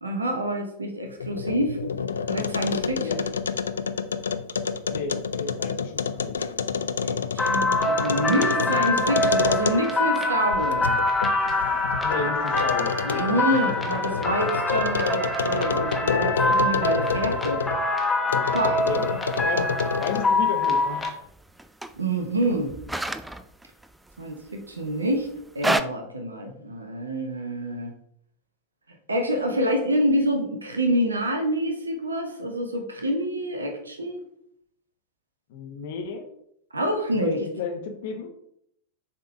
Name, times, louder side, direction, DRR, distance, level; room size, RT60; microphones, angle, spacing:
voice 1, 0.0-1.8 2.3-3.1 7.0-10.8 13.0-17.6 18.4-18.8 21.9-22.7 24.2-25.3 25.5-27.9 29.1-34.2 36.7-37.4, right 1 dB, 75° right, 4 dB, 1.0 m, -27 dB
sound 1, 1.1-10.1 10.5-17.8 18.3-20.4, left 6 dB, 70° left, 0.3 m, -28 dB
voice 2, 4.9-6.3 12.0-13.3 18.8-21.1 35.5-36.3 37.2-38.3, left 5 dB, 55° left, 4 dB, 1.1 m, -33 dB
sound 2, 7.4-21.1, left 2 dB, 10° left, 1.2 m, -25 dB
sound 3, 18.8-25.8, right 2 dB, 5° right, 0.3 m, -33 dB
6.9 x 3.8 x 3.6 m, 0.71 s
figure-of-eight pair, 90°, 0 cm